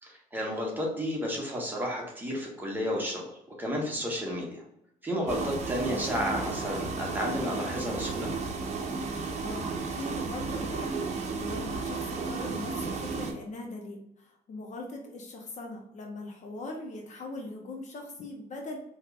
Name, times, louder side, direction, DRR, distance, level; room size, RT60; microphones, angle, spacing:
voice 1, 0.0-3.2 3.6-4.6 5.0-8.3, equal, 10° right, -2 dB, 1.4 m, -32 dB
sound 1, 5.3-13.3, right 4 dB, 40° right, 0.8 m, -33 dB
voice 2, 9.4-18.8, left 2 dB, 45° left, 1 dB, 0.9 m, -40 dB
4.4 x 3.1 x 2.5 m, 0.79 s
cardioid pair, 110°, 17 cm